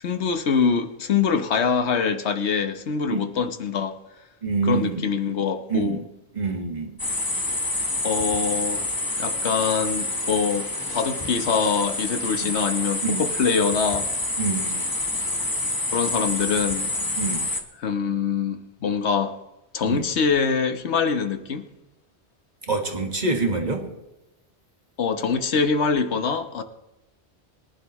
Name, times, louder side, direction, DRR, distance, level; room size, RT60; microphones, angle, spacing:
voice 1, 0.0-4.0 4.6-6.0 8.0-8.9 9.2-14.1 15.9-16.9 17.8-19.4 19.7-21.7 25.0-26.6, left 6 dB, 80° left, 1.3 m, -24 dB
voice 2, 4.4-5.0 5.7-6.0 6.3-7.0 12.4-12.5 13.0-13.2 14.4-14.7 17.2-17.4 19.8-20.0 22.6-23.9, right 4 dB, 40° right, 1.8 m, -26 dB
sound 1, 7.0-17.6, left 2 dB, 20° left, 1.2 m, -27 dB
22.5 x 11.0 x 3.1 m
omnidirectional pair, 1.1 m